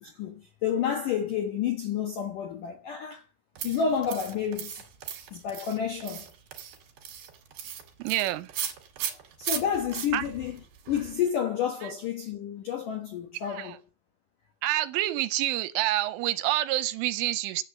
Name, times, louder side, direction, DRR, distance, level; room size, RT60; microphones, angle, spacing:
voice 1, 0.0-3.2 3.6-4.8 5.3-6.3 9.4-10.6 10.9-13.8, left 8 dB, 80° left, 1.9 m, -30 dB
sound 1, 3.5-11.3, right 9 dB, 55° right, 3.2 m, -38 dB
voice 2, 8.0-8.5 10.1-10.2 11.8-11.9 13.4-13.8 14.6-17.6, right 15 dB, 80° right, 3.1 m, -28 dB
10.5 x 8.5 x 6.9 m
omnidirectional pair, 5.8 m